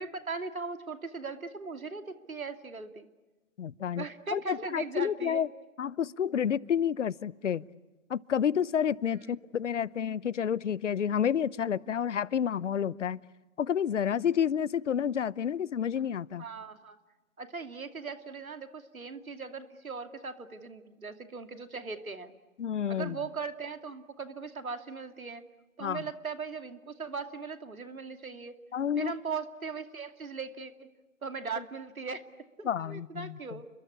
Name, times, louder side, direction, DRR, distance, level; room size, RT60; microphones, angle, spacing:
voice 1, 0.0-3.1 4.0-5.4 9.2-9.3 16.4-17.0 17.4-22.3 22.9-25.4 25.8-28.6 29.0-30.9 31.2-32.2 32.6-33.7, right 4 dB, 85° right, 8 dB, 2.6 m, -39 dB
voice 2, 3.6-4.1 4.3-5.5 5.8-7.6 8.1-13.2 13.6-16.4 22.6-23.2 25.8-26.0 28.7-29.1 32.6-33.4, left 8 dB, 60° left, 22 dB, 0.9 m, -29 dB
30.0 x 22.5 x 8.5 m, 1.2 s
figure-of-eight pair, 145°, 41 cm